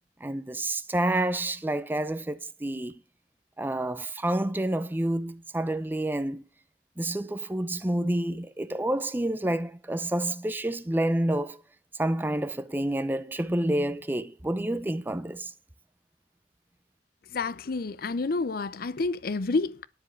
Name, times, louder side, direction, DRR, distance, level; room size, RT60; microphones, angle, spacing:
voice 1, 0.2-2.9 3.6-6.4 7.0-11.6 12.0-15.5, right 1 dB, 10° right, 0.5 m, -28 dB
voice 2, 17.3-19.8, left 3 dB, 55° left, 0.6 m, -29 dB
10.0 x 8.1 x 5.7 m
head